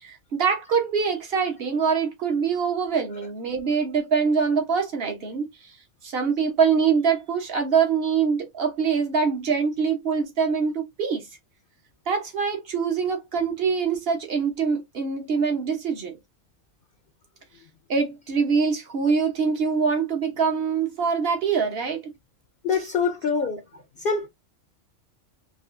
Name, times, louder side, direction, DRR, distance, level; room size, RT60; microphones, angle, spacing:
voice 1, 0.0-5.5 6.0-11.2 12.1-16.2 17.9-22.0, right 5 dB, 50° right, 1.2 m, -24 dB
voice 2, 22.6-23.6 24.0-24.3, left 5 dB, 55° left, 0.7 m, -24 dB
4.0 x 2.7 x 2.6 m
omnidirectional pair, 1.3 m